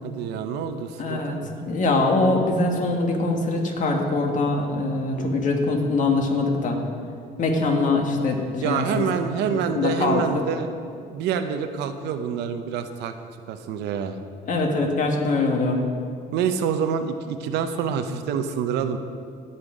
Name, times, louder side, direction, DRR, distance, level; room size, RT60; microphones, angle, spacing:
voice 1, 0.0-1.6 5.1-5.3 8.6-10.7 11.1-13.1 13.5-14.2 16.3-19.0, right 7 dB, 85° right, 8 dB, 0.7 m, -27 dB
voice 2, 1.0-6.8 7.4-9.1 9.5-10.2 14.5-15.8, left 3 dB, 50° left, 2 dB, 1.7 m, -23 dB
16.5 x 5.6 x 5.1 m, 2.2 s
cardioid pair, 110°, 17 cm